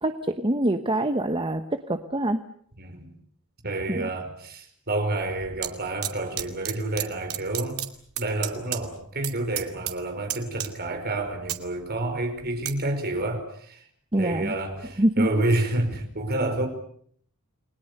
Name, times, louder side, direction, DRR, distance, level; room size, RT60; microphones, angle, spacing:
voice 1, 0.0-2.4 3.9-4.1 14.1-14.5 15.0-15.3, right 1 dB, 25° right, 1.1 m, -25 dB
voice 2, 2.8-3.1 3.6-7.9 8.2-13.8 14.2-16.7, right 2 dB, 45° right, 5.2 m, -29 dB
sound 1, 5.2-5.7 6.0-7.0 7.3-8.8 9.1-9.3 9.6-10.0 10.3-10.9 11.3-12.7 13.2-13.4, right 12 dB, 90° right, 2.6 m, -31 dB
30.0 x 21.5 x 6.8 m
head